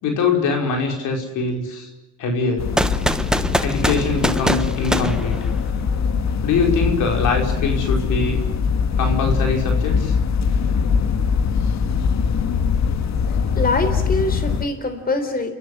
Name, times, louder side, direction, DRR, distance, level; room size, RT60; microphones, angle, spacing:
voice 1, 0.0-1.9 2.2-2.7 3.6-5.5 6.4-8.4 9.0-10.2, left 4 dB, 85° left, 2 dB, 5.3 m, -23 dB
sound 1, 2.6-14.7, left 6 dB, 65° left, 1.8 m, -22 dB
sound 2, 2.8-5.9, right 1 dB, ahead, 1.2 m, -23 dB
voice 2, 13.6-15.5, left 2 dB, 30° left, 8 dB, 3.8 m, -23 dB
30.0 x 14.0 x 9.9 m, 1.0 s
cardioid pair, 90°, 30 cm